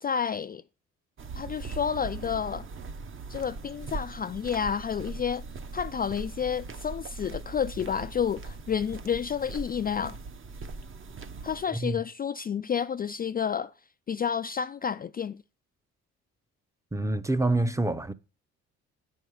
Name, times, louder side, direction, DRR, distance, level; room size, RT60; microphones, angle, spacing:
voice 1, 0.0-0.6 1.3-2.7 3.3-5.4 5.7-10.2 11.4-13.7 14.1-15.4, left 7 dB, 30° left, 0.4 m, -30 dB
sound 1, 1.2-11.7, right 3 dB, 40° right, 1.0 m, -40 dB
voice 2, 16.9-18.1, right 2 dB, 10° right, 0.7 m, -27 dB
9.2 x 5.5 x 6.4 m
cardioid pair, 90°, 30 cm